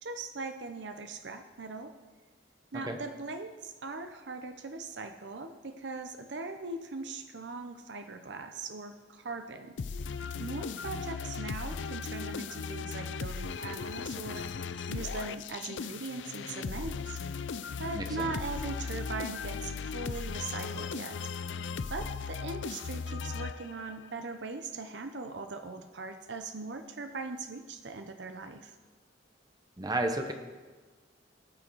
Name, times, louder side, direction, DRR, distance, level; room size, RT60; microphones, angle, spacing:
voice 1, 0.0-1.9 2.7-9.8 10.4-17.2 17.8-21.2 21.9-28.8, right 3 dB, 70° right, 7 dB, 0.8 m, -40 dB
sound 1, 9.8-24.0, left 5 dB, 80° left, 0.5 m, -37 dB
voice 2, 17.9-18.3 29.8-30.3, right 1 dB, 20° right, 5 dB, 0.8 m, -32 dB
18.0 x 6.5 x 4.6 m, 1.4 s
head